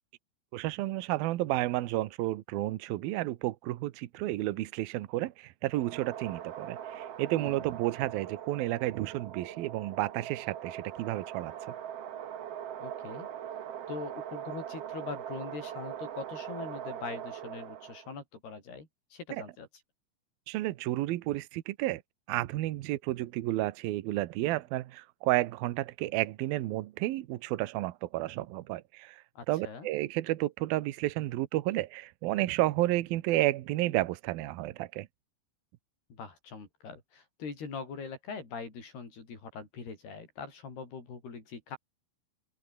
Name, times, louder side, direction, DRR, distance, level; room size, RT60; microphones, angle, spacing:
voice 1, 0.5-11.5 19.3-19.4 20.5-22.0 22.3-29.2 29.5-35.1, right 16 dB, 75° right, 2.7 m, -31 dB
sound 1, 5.7-18.1, right 10 dB, 55° right, 1.9 m, -41 dB
voice 2, 12.8-13.3 13.9-19.7 29.4-29.9 36.1-41.8, left 5 dB, 90° left, 8.3 m, -42 dB
open air
omnidirectional pair, 4.4 m